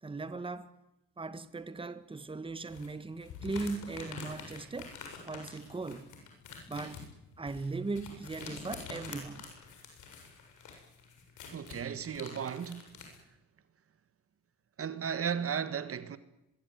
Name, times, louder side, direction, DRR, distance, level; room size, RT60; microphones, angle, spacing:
voice 1, 0.0-0.7 1.2-5.0 5.3-6.1 6.7-7.0 7.4-9.5, right 3 dB, 15° right, 1.5 m, -38 dB
sound 1, 2.7-13.2, left 5 dB, 80° left, 7.4 m, -47 dB
voice 2, 11.5-13.2 14.8-16.2, right 7 dB, 50° right, 1.6 m, -35 dB
23.5 x 21.0 x 9.5 m
cardioid pair, 90°, 30 cm